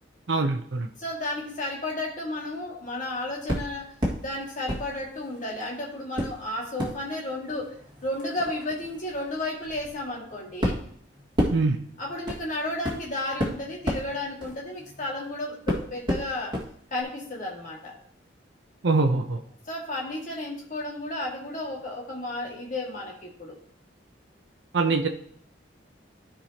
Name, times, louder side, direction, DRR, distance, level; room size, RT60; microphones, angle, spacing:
voice 1, 0.3-0.9 11.5-11.8 18.8-19.4 24.7-25.1, right 3 dB, 80° right, 3 dB, 0.7 m, -23 dB
voice 2, 1.0-3.9 4.2-7.7 8.0-10.8 12.0-16.5 16.9-17.9 19.7-23.6, left 1 dB, 45° left, -2 dB, 2.1 m, -33 dB
sound 1, 3.5-4.2 4.7-5.6 6.1-15.2 15.7-16.7 17.0-17.1, equal, 25° right, 2.0 m, -31 dB
13.5 x 4.9 x 2.9 m, 0.64 s
head